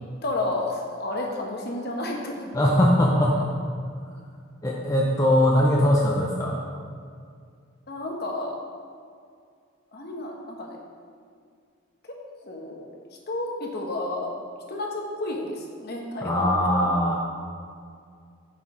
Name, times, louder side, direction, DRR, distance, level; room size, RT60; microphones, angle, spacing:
voice 1, 0.2-2.5 7.9-8.6 9.9-10.8 12.4-12.8 13.3-14.3 14.7-17.2, left 2 dB, 50° left, 0 dB, 1.0 m, -31 dB
voice 2, 2.5-3.5 4.6-6.6 16.2-17.2, left 1 dB, 15° left, -2 dB, 0.5 m, -21 dB
7.2 x 4.6 x 4.8 m, 2.2 s
head